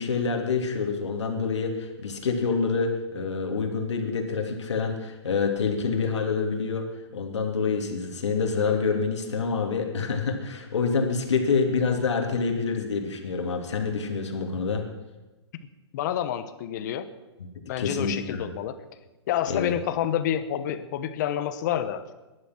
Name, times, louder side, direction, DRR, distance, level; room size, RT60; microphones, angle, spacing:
voice 1, 0.0-6.9 7.1-14.8 17.8-18.5 19.5-19.7, left 5 dB, 85° left, 3 dB, 2.8 m, -27 dB
voice 2, 15.9-17.1 17.7-18.8 19.3-22.0, left 10 dB, 40° left, 12 dB, 1.2 m, -28 dB
20.0 x 11.0 x 6.1 m, 1.1 s
hypercardioid pair, 160°, 14 cm